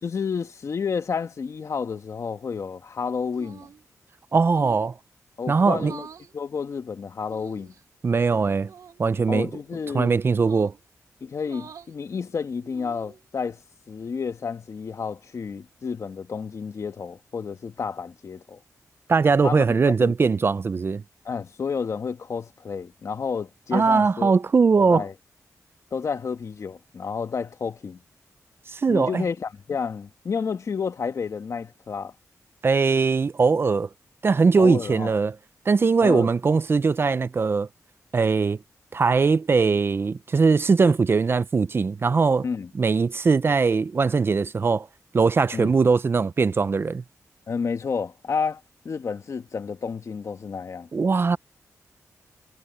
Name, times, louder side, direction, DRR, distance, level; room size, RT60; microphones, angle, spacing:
voice 1, 0.0-3.7 5.4-6.1 6.3-7.7 9.3-10.1 11.2-13.6 13.9-18.6 19.4-20.1 21.2-24.4 24.8-25.1 25.9-28.0 28.9-32.1 34.6-35.1 36.0-36.3 42.4-42.7 45.5-45.8 47.5-50.9, left 5 dB, 55° left, 1.4 m, -30 dB
sound 1, 3.3-3.8 4.4-4.9 5.8-6.3 7.3-7.8 8.6-9.0 10.3-10.8 11.4-11.9 12.6-13.2, right 7 dB, 75° right, 3.5 m, -45 dB
voice 2, 4.3-4.9 5.5-5.9 8.0-8.7 9.0-9.5 9.9-10.7 19.1-21.0 23.7-25.0 28.7-29.2 32.6-33.9 34.2-35.3 35.7-37.7 38.1-38.6 38.9-42.5 42.8-44.9 45.1-47.0 50.9-51.4, right 4 dB, 40° right, 0.5 m, -20 dB
wide cardioid pair, 105°, 6 cm